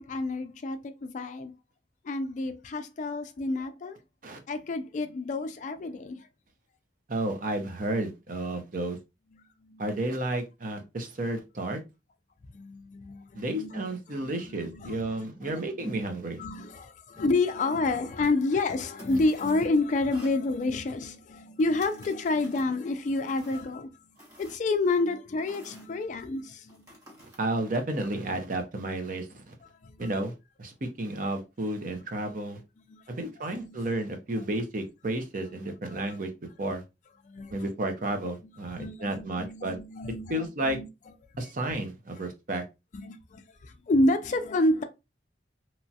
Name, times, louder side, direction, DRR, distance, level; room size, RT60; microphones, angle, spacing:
voice 1, 0.0-1.5 2.0-4.0 4.5-6.3 9.6-9.8 12.5-16.0 16.4-23.9 24.4-26.9 29.8-30.1 32.9-33.8 35.9-36.1 37.2-37.5 38.8-40.9 42.9-44.8, left 2 dB, 40° left, 0.3 m, -29 dB
voice 2, 7.1-9.0 9.8-11.8 13.3-16.4 27.4-29.5 30.0-30.3 30.6-32.6 33.1-36.3 36.6-36.8 37.5-39.8 40.3-40.8 41.4-42.6, right 1 dB, 45° right, 0.6 m, -32 dB
sound 1, 18.9-19.7 20.1-20.4 21.6-22.8 23.3-23.8 24.2-24.9 25.4-25.9 26.7-27.4, equal, 20° right, 0.9 m, -51 dB
2.9 x 2.3 x 2.7 m
head